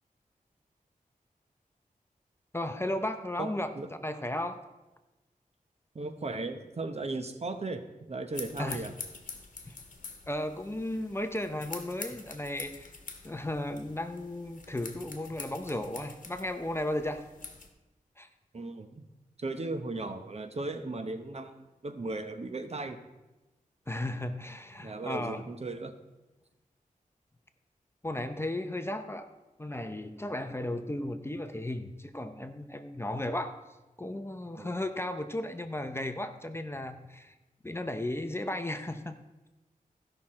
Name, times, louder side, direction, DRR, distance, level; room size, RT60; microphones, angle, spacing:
voice 1, 2.5-3.7 4.0-4.6 8.6-8.8 10.3-12.9 13.2-17.2 18.2-18.3 23.9-25.4 28.0-29.3 29.6-33.6 34.0-37.3 37.6-39.2, left 1 dB, 15° left, 8 dB, 0.7 m, -35 dB
voice 2, 3.4-3.9 5.9-8.9 18.5-19.0 19.4-23.0 24.8-25.9 30.4-30.5 34.6-34.8, right 2 dB, 45° right, 8 dB, 0.9 m, -37 dB
sound 1, 8.3-17.7, left 4 dB, 60° left, 1.3 m, -46 dB
15.0 x 5.9 x 4.3 m, 1.1 s
wide cardioid pair, 85°, 15 cm